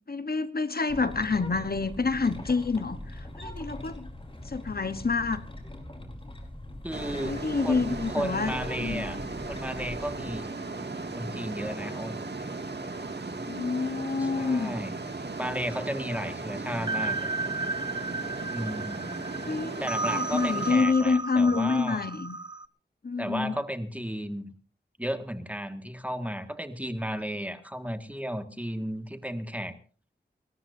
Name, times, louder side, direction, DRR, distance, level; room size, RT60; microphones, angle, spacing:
voice 1, 0.1-4.1 4.4-5.4 7.2-8.5 8.8-9.2 13.5-14.8 19.4-22.4 23.0-23.5, left 4 dB, 55° left, 11 dB, 1.1 m, -27 dB
sound 1, 0.9-10.4, left 1 dB, 30° left, 4.3 m, -41 dB
voice 2, 6.8-9.2 9.5-10.5 11.1-12.2 14.2-14.9 15.4-17.3 18.5-19.1 19.8-22.0 23.2-24.5 25.0-29.7, equal, 10° right, 7 dB, 1.9 m, -34 dB
sound 2, 6.9-20.7, right 3 dB, 65° right, 2.3 m, -37 dB
sound 3, 16.7-22.7, right 3 dB, 25° right, 0.7 m, -33 dB
30.0 x 13.5 x 2.7 m, 0.40 s
wide cardioid pair, 65°, 18 cm